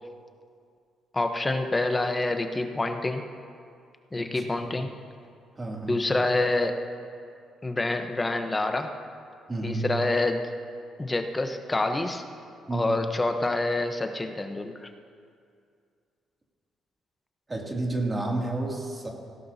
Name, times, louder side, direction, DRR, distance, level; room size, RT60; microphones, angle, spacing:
voice 1, 1.1-3.3 4.1-5.0 5.9-6.8 7.6-9.0 9.6-10.5 11.0-12.2 12.7-14.9, left 2 dB, 20° left, 6 dB, 0.9 m, -27 dB
voice 2, 4.2-4.7 5.6-6.0 9.5-9.9 12.7-13.0 17.5-19.1, right 2 dB, 25° right, -1 dB, 2.5 m, -31 dB
18.0 x 16.0 x 2.8 m, 2.3 s
cardioid pair, 90°, 0 cm